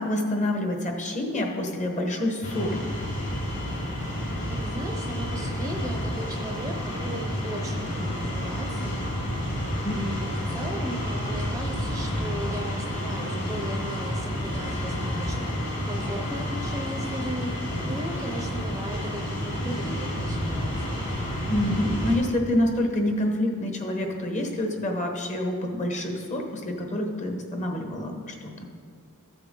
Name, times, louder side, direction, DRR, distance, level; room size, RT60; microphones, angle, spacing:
voice 1, 0.0-2.9 21.5-28.5, left 1 dB, 35° left, 2 dB, 1.2 m, -27 dB
sound 1, 2.4-22.2, equal, 55° left, 2.9 m, -30 dB
voice 2, 4.5-9.0 9.4-21.1, right 1 dB, 15° right, 2 dB, 0.7 m, -37 dB
14.0 x 7.8 x 3.8 m, 2.1 s
head